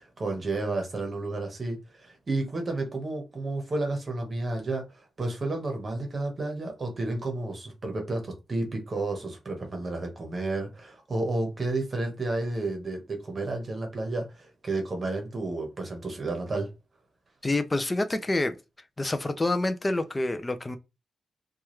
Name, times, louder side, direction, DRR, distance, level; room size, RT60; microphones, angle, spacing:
voice 1, 0.0-4.8 5.2-16.7, right 2 dB, 30° right, 1.0 m, -31 dB
voice 2, 17.4-18.6 19.0-20.8, left 2 dB, 15° left, 0.4 m, -27 dB
4.6 x 2.3 x 3.1 m
wide cardioid pair, 170°, 0 cm